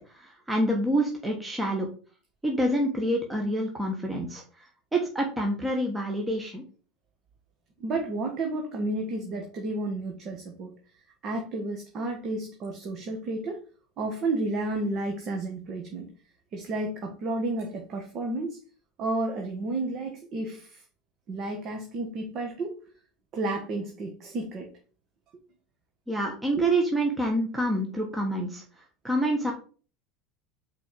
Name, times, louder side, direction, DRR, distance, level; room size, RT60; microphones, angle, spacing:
voice 1, 0.1-1.9 2.4-4.4 4.9-6.6 26.1-28.6 29.0-29.5, right 1 dB, 10° right, 1 dB, 1.5 m, -27 dB
voice 2, 7.8-10.7 11.2-13.6 14.0-16.1 16.5-18.6 19.0-20.8 21.3-22.7 23.3-24.7 26.5-26.7, right 2 dB, 45° right, 2 dB, 1.5 m, -31 dB
5.1 x 4.3 x 5.3 m, 0.39 s
hypercardioid pair, 95°, 0 cm